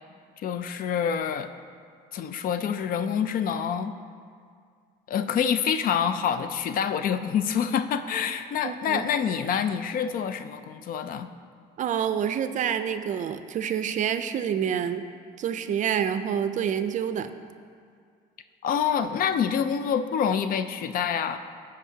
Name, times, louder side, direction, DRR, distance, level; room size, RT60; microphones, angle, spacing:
voice 1, 0.4-1.5 2.1-3.9 5.1-11.3 18.6-21.4, left 7 dB, 55° left, 10 dB, 0.4 m, -26 dB
voice 2, 8.6-9.0 11.8-15.0 15.4-17.3, right 8 dB, 50° right, 10 dB, 0.4 m, -27 dB
15.0 x 5.3 x 2.8 m, 2.1 s
cardioid pair, 110°, 17 cm